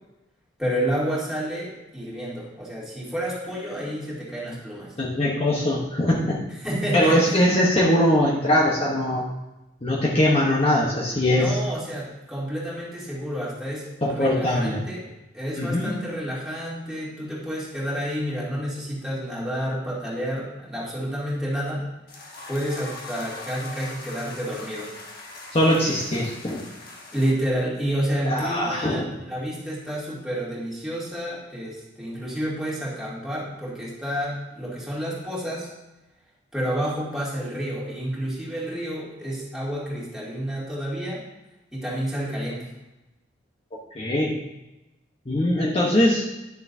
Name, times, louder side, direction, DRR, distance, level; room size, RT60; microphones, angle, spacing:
voice 1, 0.6-4.9 6.6-7.2 11.3-13.9 14.1-15.1 15.3-21.9 22.5-24.9 27.1-35.7 36.5-41.2 41.7-42.7, equal, ahead, -8 dB, 2.6 m, -29 dB
voice 2, 5.0-6.4 6.9-9.2 9.8-11.6 14.0-14.8 15.5-16.1 25.5-26.6 28.3-29.2 43.9-44.4 45.3-46.2, left 1 dB, 30° left, -5 dB, 1.0 m, -21 dB
sound 1, 22.1-27.3, left 2 dB, 55° left, 1.3 m, -41 dB
10.5 x 6.7 x 2.7 m, 1.0 s
head